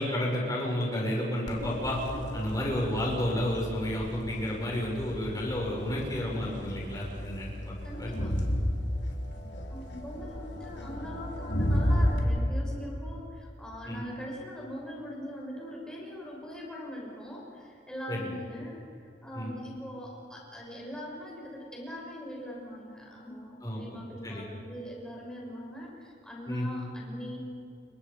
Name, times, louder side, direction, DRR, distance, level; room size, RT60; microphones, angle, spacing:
voice 1, 0.0-2.0 2.3-7.7 8.0-8.1 13.9-14.0 18.1-18.3 19.3-19.5 23.6-24.4 26.5-26.7, left 1 dB, 20° left, -3 dB, 6.5 m, -31 dB
Crowd, 1.5-12.2, equal, 70° left, 3.5 m, -33 dB
voice 2, 7.8-8.3 9.7-27.4, equal, 5° left, -3 dB, 6.2 m, -41 dB
29.5 x 23.0 x 5.5 m, 2.6 s
head